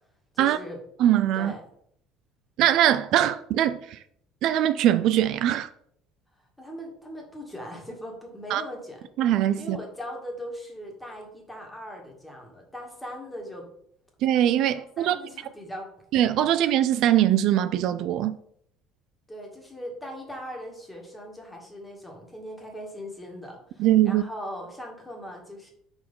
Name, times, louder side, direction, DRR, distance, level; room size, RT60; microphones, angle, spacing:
voice 1, 0.3-0.8 1.3-1.6 6.4-9.0 9.6-13.7 14.7-15.9 19.3-25.7, equal, 5° left, 1.9 m, -39 dB
voice 2, 1.0-1.5 2.6-4.0 4.4-5.7 8.5-8.6 9.2-9.8 14.2-15.2 16.1-18.3 23.8-24.2, right 12 dB, 65° right, 0.3 m, -22 dB
4.4 x 4.2 x 5.5 m
supercardioid pair, 105°, 0 cm